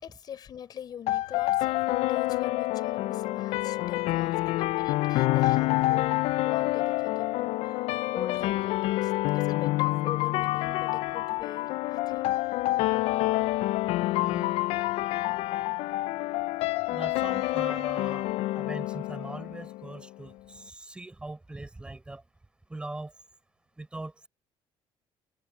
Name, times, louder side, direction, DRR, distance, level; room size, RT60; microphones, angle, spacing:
voice 1, 0.0-7.8 8.1-12.4, left 9 dB, 45° left, 5.1 m, -42 dB
sound 1, 1.1-20.0, left 18 dB, 80° left, 0.4 m, -27 dB
voice 2, 14.1-14.5 16.9-18.3 18.5-22.2 22.7-23.1 23.8-24.3, right 2 dB, 10° right, 4.6 m, -41 dB
cardioid pair, 145°, 10 cm